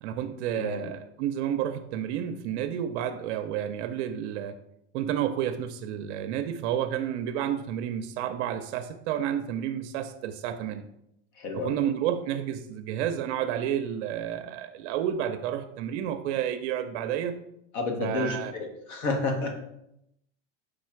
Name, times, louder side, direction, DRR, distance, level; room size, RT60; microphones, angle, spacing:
voice 1, 0.0-4.6 4.9-10.8 11.6-17.4 18.0-18.5, right 10 dB, 65° right, 8 dB, 0.5 m, -30 dB
voice 2, 11.4-11.8 17.7-19.6, left 3 dB, 65° left, 2 dB, 1.2 m, -30 dB
4.9 x 2.4 x 4.4 m, 0.79 s
supercardioid pair, 120°, 36 cm